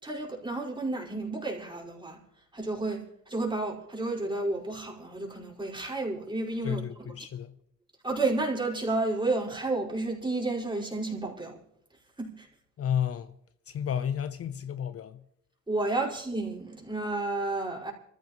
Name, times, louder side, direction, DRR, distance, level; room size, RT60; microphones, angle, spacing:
voice 1, 0.0-2.2 2.5-7.1 8.0-11.6 12.2-12.5 15.7-17.9, right 2 dB, 15° right, 5.2 m, -31 dB
voice 2, 6.6-7.5 12.8-13.3 13.7-15.2, left 9 dB, 50° left, 0.7 m, -32 dB
25.5 x 14.5 x 3.1 m
cardioid pair, 90°, 30 cm